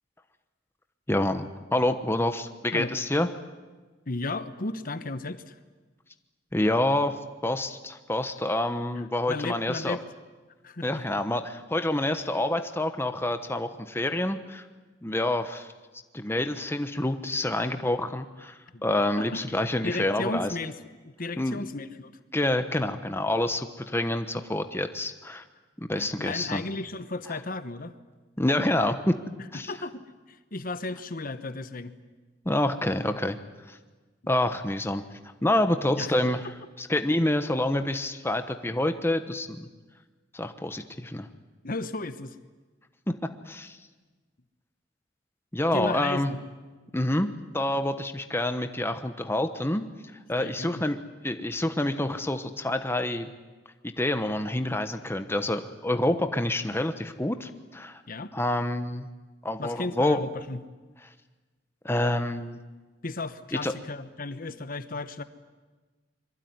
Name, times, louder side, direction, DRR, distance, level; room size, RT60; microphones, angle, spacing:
voice 1, 1.1-3.3 6.5-7.2 7.4-10.0 10.8-14.6 15.0-15.7 16.1-18.5 18.8-20.5 21.4-21.6 22.3-25.4 25.9-26.6 28.4-29.2 29.5-29.7 32.4-33.4 33.7-33.8 34.3-35.0 35.4-36.4 36.8-39.7 40.3-41.3 43.1-43.8 45.5-46.3 46.9-49.9 50.3-51.0 51.2-53.3 54.0-58.0 58.3-59.1 59.4-60.2 61.8-62.6 63.6-63.7, left 1 dB, 15° left, 8 dB, 1.1 m, -27 dB
voice 2, 4.1-5.6 8.9-10.0 10.6-11.0 18.7-18.8 19.2-20.8 21.0-22.2 26.0-27.9 29.4-31.9 36.0-36.1 41.6-42.4 45.7-46.4 50.4-50.8 58.1-58.3 59.6-60.6 63.0-65.2, left 2 dB, 50° left, 12 dB, 1.1 m, -34 dB
25.0 x 23.0 x 9.6 m, 1.3 s
head